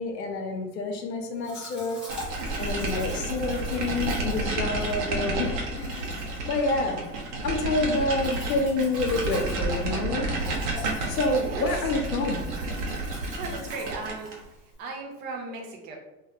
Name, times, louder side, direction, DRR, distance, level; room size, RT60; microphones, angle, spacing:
voice 1, 0.0-2.0 2.6-6.1 6.5-7.0 7.4-10.4 11.1-12.4, left 2 dB, 90° left, 3 dB, 0.6 m, -28 dB
Domestic sounds home sounds, 1.4-14.8, left 1 dB, ahead, 0.8 m, -45 dB
sound 1, 2.1-14.4, right 2 dB, 50° right, 0.7 m, -31 dB
voice 2, 11.5-11.9 13.4-14.3 14.8-16.0, right 3 dB, 25° right, 0 dB, 0.3 m, -36 dB
2.2 x 2.1 x 2.8 m, 0.97 s
hypercardioid pair, 95°, 48 cm